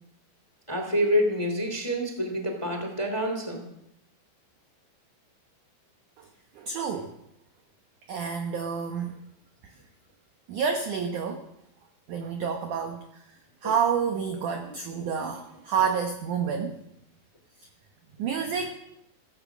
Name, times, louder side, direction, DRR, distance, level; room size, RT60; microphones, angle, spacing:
voice 1, 0.7-3.6, equal, 10° left, 4 dB, 1.7 m, -27 dB
voice 2, 6.5-7.2 8.1-9.2 9.6-9.7 10.5-11.5 12.1-13.2 13.6-16.8 18.2-18.7, right 6 dB, 80° right, 5 dB, 1.8 m, -29 dB
15.5 x 14.5 x 6.1 m, 0.79 s
omnidirectional pair, 5.2 m